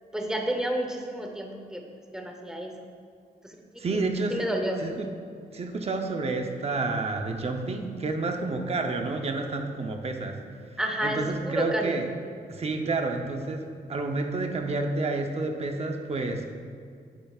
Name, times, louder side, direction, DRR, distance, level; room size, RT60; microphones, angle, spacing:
voice 1, 0.1-1.8 2.1-2.7 3.4-3.6 4.3-4.8 10.8-12.0, right 1 dB, 5° right, 2 dB, 0.8 m, -30 dB
voice 2, 3.8-4.5 4.8-5.1 5.5-10.4 11.0-12.0 12.5-16.4, right 3 dB, 40° right, 4 dB, 0.7 m, -29 dB
9.9 x 8.9 x 2.4 m, 2.1 s
wide cardioid pair, 160°, 16 cm